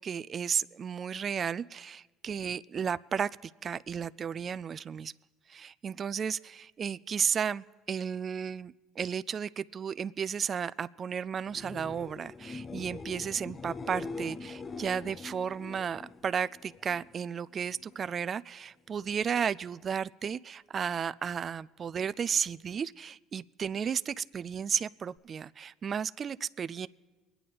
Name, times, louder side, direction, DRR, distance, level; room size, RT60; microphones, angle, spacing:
voice 1, 0.0-5.1 5.5-26.9, right 7 dB, 40° right, 16 dB, 0.3 m, -33 dB
sound 1, 11.4-17.2 17.5-18.1 25.2-25.3, left 4 dB, 30° left, 0.5 m, -43 dB
23.5 x 9.2 x 4.0 m, 1.3 s
hypercardioid pair, 70°, 0 cm